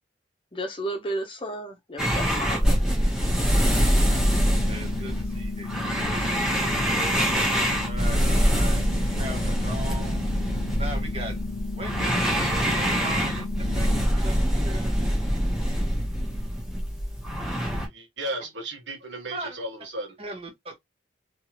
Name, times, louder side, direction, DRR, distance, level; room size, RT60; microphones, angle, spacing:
voice 1, 0.5-3.0, right 1 dB, 30° left, 0.8 m, -33 dB
sound 1, 2.0-17.9, equal, 5° right, 1.1 m, -24 dB
sound 2, 4.1-14.1, left 5 dB, 80° left, 0.4 m, -36 dB
voice 2, 4.7-6.3 7.5-8.8 9.1-10.2 10.8-11.4 11.7-12.4 12.7-13.9 14.1-15.0 19.3-19.6 20.2-20.7, right 1 dB, 30° right, 1.2 m, -39 dB
voice 3, 17.9-20.2, right 1 dB, 75° right, 1.4 m, -34 dB
3.4 x 3.0 x 3.0 m
head